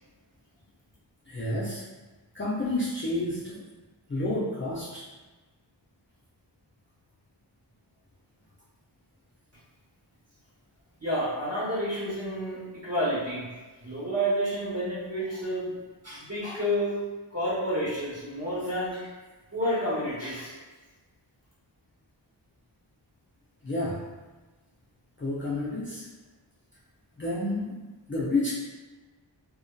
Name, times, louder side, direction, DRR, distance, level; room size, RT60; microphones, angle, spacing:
voice 1, 1.3-1.8 2.3-3.6 4.1-5.1 23.6-24.1 25.2-26.1 27.2-27.8 28.1-28.5, left 2 dB, 25° left, -8 dB, 0.4 m, -30 dB
voice 2, 11.0-13.5 13.8-17.0 17.3-19.1 19.5-20.5, equal, 35° right, -8 dB, 1.0 m, -30 dB
2.6 x 2.2 x 2.2 m, 1.2 s
wide cardioid pair, 80°, 47 cm